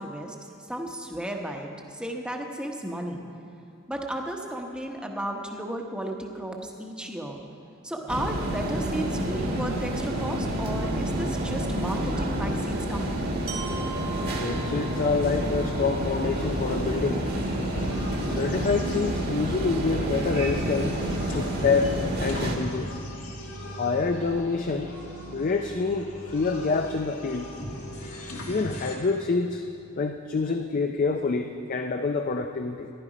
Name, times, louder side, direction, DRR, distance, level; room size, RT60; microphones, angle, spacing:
voice 1, 0.0-3.2 3.9-7.4 7.8-13.4, right 1 dB, 5° right, 1 dB, 0.9 m, -34 dB
sound 1, 8.1-22.6, right 1 dB, 45° right, 1.5 m, -29 dB
Glockenspiel, 13.5-17.4, right 5 dB, 65° right, 2.0 m, -42 dB
voice 2, 14.2-17.2 18.3-21.0 21.3-23.0 23.8-24.9 25.3-27.5 28.5-29.6 30.0-32.9, left 4 dB, 40° left, 5 dB, 0.4 m, -27 dB
sound 2, 16.2-29.0, equal, 75° left, 2.0 m, -39 dB
15.0 x 11.5 x 5.0 m, 2.5 s
head